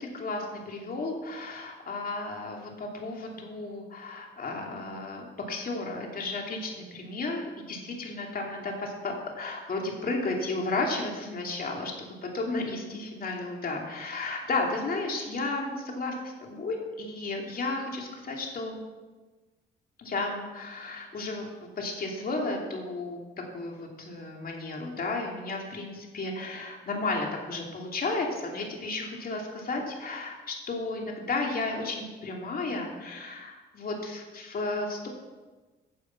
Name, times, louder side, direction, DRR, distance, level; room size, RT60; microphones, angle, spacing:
voice 1, 0.0-7.4 7.7-18.8 20.0-21.5 21.8-23.2 23.5-35.1, left 3 dB, 50° left, 0 dB, 2.7 m, -33 dB
9.9 x 7.0 x 7.4 m, 1.3 s
cardioid pair, 90°, 20 cm